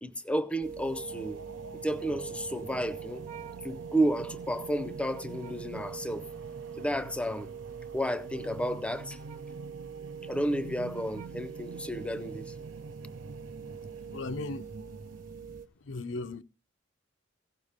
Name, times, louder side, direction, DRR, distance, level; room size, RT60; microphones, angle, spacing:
voice 1, 0.0-1.4 1.8-3.2 3.6-6.3 6.8-7.5 7.9-9.2 10.2-12.5, equal, 5° left, 0.6 m, -32 dB
sound 1, 0.6-15.7, right 7 dB, 45° right, 1.1 m, -44 dB
sound 2, 0.6-15.6, right 3 dB, 80° right, 0.7 m, -46 dB
voice 2, 14.1-14.7 15.8-16.4, left 3 dB, 70° left, 0.6 m, -36 dB
15.5 x 6.8 x 4.9 m
head